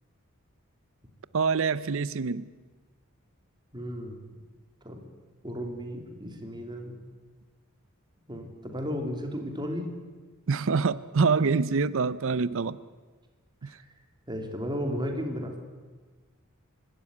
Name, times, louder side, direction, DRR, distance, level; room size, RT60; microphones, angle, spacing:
voice 1, 1.3-2.5 10.5-12.8, right 4 dB, 65° right, 18 dB, 0.6 m, -25 dB
voice 2, 3.7-4.2 4.8-5.0 5.4-7.0 8.3-9.9 13.6-13.8 14.3-15.6, equal, 20° right, 4 dB, 2.9 m, -34 dB
25.0 x 12.5 x 9.6 m, 1.3 s
head